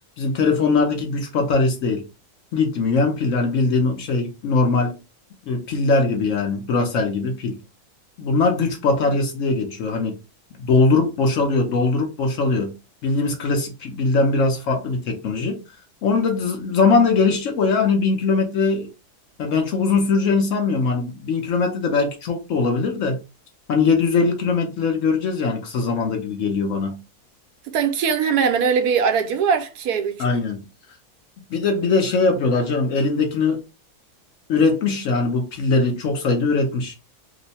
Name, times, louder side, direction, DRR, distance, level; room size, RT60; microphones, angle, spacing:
voice 1, 0.2-2.0 2.5-5.0 5.5-7.6 8.2-10.2 10.6-12.7 13.0-15.6 16.0-18.9 19.4-23.2 23.7-27.0 30.2-30.6 31.5-33.6 34.5-36.9, left 4 dB, 65° left, 0.9 m, -21 dB
voice 2, 27.7-30.4, right 6 dB, 80° right, 1.1 m, -21 dB
3.0 x 2.1 x 4.0 m
omnidirectional pair, 1.7 m